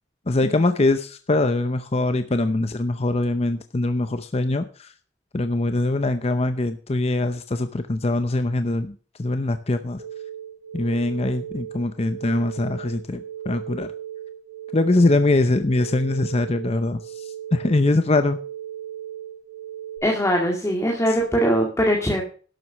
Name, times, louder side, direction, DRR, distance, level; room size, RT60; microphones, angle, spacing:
voice 1, 0.3-4.9 5.3-10.0 10.7-13.9 14.7-18.4, left 2 dB, 35° left, 9 dB, 0.7 m, -23 dB
sound 1, 10.0-20.0, right 10 dB, 80° right, 3.1 m, -37 dB
voice 2, 20.0-22.2, equal, 15° left, 0 dB, 2.0 m, -21 dB
12.0 x 7.7 x 6.1 m, 0.40 s
head